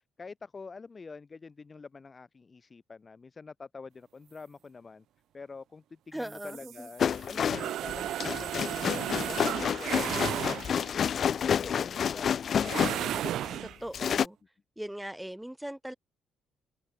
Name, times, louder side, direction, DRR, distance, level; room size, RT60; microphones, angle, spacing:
voice 1, 0.2-5.0 5.3-11.0 11.4-12.8, left 4 dB, 30° left, 2.4 m, -46 dB
voice 2, 6.1-6.9 13.6-14.4 14.8-15.9, right 1 dB, 5° right, 5.9 m, -39 dB
sound 1, 6.2-11.0 12.6-13.8, right 12 dB, 75° right, 1.1 m, -34 dB
sound 2, 7.0-13.6 13.9-14.3, left 8 dB, 55° left, 0.9 m, -29 dB
cardioid pair, 90°, 0 cm